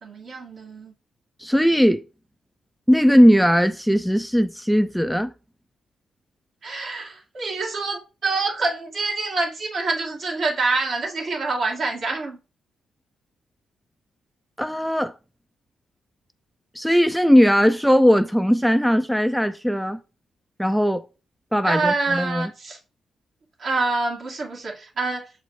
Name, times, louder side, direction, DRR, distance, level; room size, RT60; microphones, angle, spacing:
voice 1, 0.0-0.9 6.6-12.4 21.6-22.8 23.6-25.3, right 3 dB, 60° right, 2.3 m, -26 dB
voice 2, 1.4-2.0 2.9-5.3 14.6-15.1 16.7-20.0 20.6-21.0 21.5-22.5, equal, ahead, 0.5 m, -18 dB
7.2 x 4.0 x 3.2 m
supercardioid pair, 60°, 0 cm